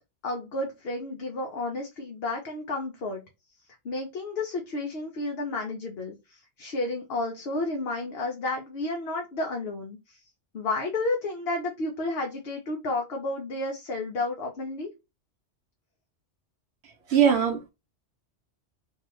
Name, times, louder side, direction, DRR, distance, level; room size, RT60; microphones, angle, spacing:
voice 1, 0.2-3.2 3.8-10.2 10.5-14.9, left 2 dB, 60° left, 0.9 m, -31 dB
voice 2, 16.8-17.7, right 8 dB, 70° right, 0.8 m, -22 dB
2.8 x 2.3 x 3.1 m
omnidirectional pair, 1.2 m